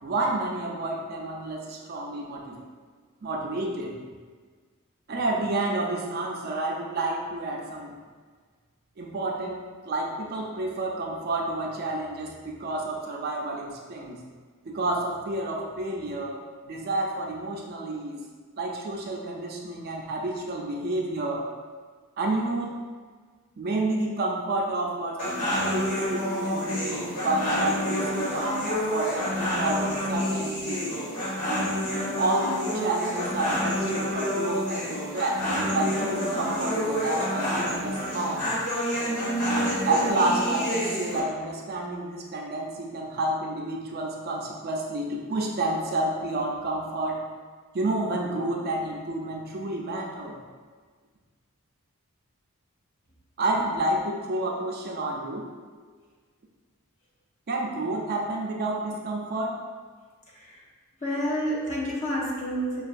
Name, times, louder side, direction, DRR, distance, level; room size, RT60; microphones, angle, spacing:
voice 1, 0.0-2.6 3.2-4.0 5.1-7.9 9.0-14.2 14.6-18.2 18.6-21.5 22.2-22.8 23.6-30.9 32.2-35.4 35.7-38.5 39.9-47.3 47.7-50.4 53.4-55.4 57.5-59.6, right 2 dB, 45° right, -1 dB, 0.4 m, -30 dB
sound 1, 25.2-41.2, equal, 85° left, 1.3 m, -28 dB
voice 2, 61.0-62.8, equal, 30° left, -5 dB, 0.7 m, -29 dB
5.3 x 2.3 x 2.5 m, 1.5 s
head